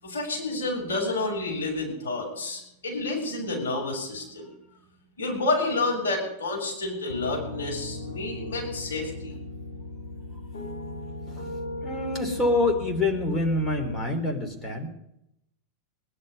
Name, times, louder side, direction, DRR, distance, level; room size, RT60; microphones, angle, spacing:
voice 1, 0.0-4.4 5.2-9.3, left 2 dB, 65° left, -2 dB, 6.8 m, -29 dB
Piano, 7.1-14.0, left 2 dB, 80° left, 4.8 m, -37 dB
voice 2, 11.8-14.9, left 2 dB, 15° left, 3 dB, 3.2 m, -26 dB
20.0 x 11.0 x 5.4 m, 0.80 s
figure-of-eight pair, 90°, 0 cm